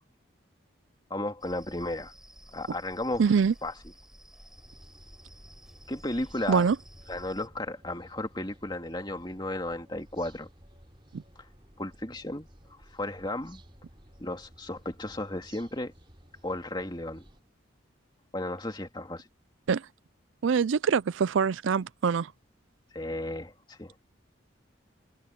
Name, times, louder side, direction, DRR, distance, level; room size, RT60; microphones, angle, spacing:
voice 1, 1.1-2.1 2.5-3.7 5.9-6.7 7.1-10.5 11.4-11.5 11.8-12.5 12.9-13.6 14.2-15.9 16.4-17.3 18.3-19.3 22.9-24.0, left 1 dB, 20° left, 2.6 m, -34 dB
sound 1, 1.4-7.5, equal, 5° right, 5.4 m, -53 dB
voice 2, 3.2-3.5 6.5-6.8 19.7-19.8 20.4-22.3, right 6 dB, 75° right, 0.4 m, -24 dB
sound 2, 4.6-17.4, right 1 dB, 25° right, 4.1 m, -55 dB
head